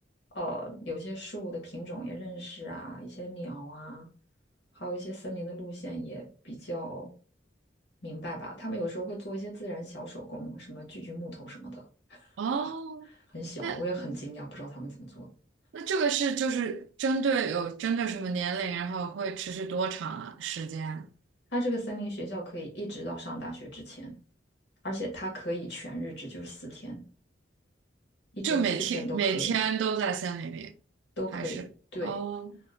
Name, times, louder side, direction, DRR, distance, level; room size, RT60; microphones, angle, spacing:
voice 1, 0.3-4.1 4.7-7.1 8.0-11.8 12.1-12.3 12.6-12.7 13.3-15.3 21.5-24.1 24.8-27.0 28.3-28.6 28.9-29.6 31.2-31.6 31.9-32.2, right 1 dB, 65° left, 1.2 m, -37 dB
voice 2, 12.4-13.1 13.6-13.8 15.7-21.1 28.4-30.7 31.3-31.6 32.0-32.5, right 6 dB, 75° right, 0.3 m, -30 dB
2.8 x 2.1 x 3.7 m
head